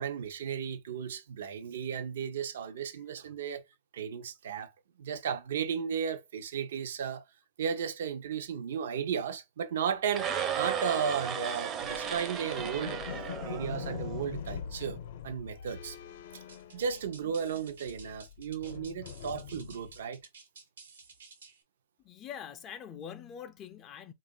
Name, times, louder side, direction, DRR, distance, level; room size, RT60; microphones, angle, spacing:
voice 1, 0.0-3.6 3.9-4.7 5.0-7.2 7.6-10.3 10.6-13.0 13.5-15.0 15.2-16.0 16.7-20.2, right 7 dB, 75° right, 0.6 m, -34 dB
sound 1, 10.1-14.3, right 7 dB, 25° right, 0.5 m, -35 dB
sound 2, 11.8-17.4 17.7-20.0, left 8 dB, 65° left, 0.6 m, -43 dB
sound 3, 16.5-21.6, right 5 dB, 90° right, 1.3 m, -53 dB
voice 2, 22.0-24.1, left 8 dB, 25° left, 0.4 m, -44 dB
3.7 x 2.4 x 3.7 m
hypercardioid pair, 140°, 0 cm